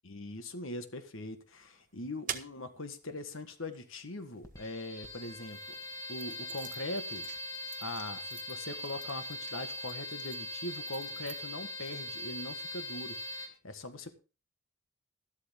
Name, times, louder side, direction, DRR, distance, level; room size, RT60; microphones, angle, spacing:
voice 1, 0.0-5.8 6.1-7.3 7.8-14.1, left 2 dB, 60° left, 1.6 m, -41 dB
sound 1, 1.5-5.1 5.7-12.0, right 8 dB, 35° right, 1.3 m, -48 dB
sound 2, 4.4-13.5, left 1 dB, 15° left, 1.6 m, -41 dB
13.0 x 12.5 x 3.6 m
head